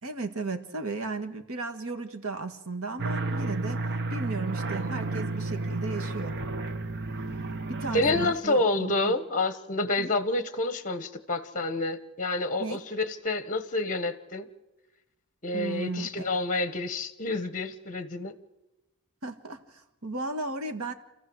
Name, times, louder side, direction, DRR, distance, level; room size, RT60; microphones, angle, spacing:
voice 1, 0.0-3.8 4.1-6.4 7.7-9.1 10.0-10.1 12.6-12.8 15.5-16.3 19.2-20.9, right 3 dB, 70° right, 7 dB, 1.9 m, -35 dB
sound 1, 3.0-8.3, right 3 dB, 55° right, 1.2 m, -32 dB
voice 2, 7.9-14.5 15.4-18.3, left 2 dB, 35° left, 13 dB, 1.2 m, -28 dB
28.5 x 14.5 x 7.9 m, 1.0 s
head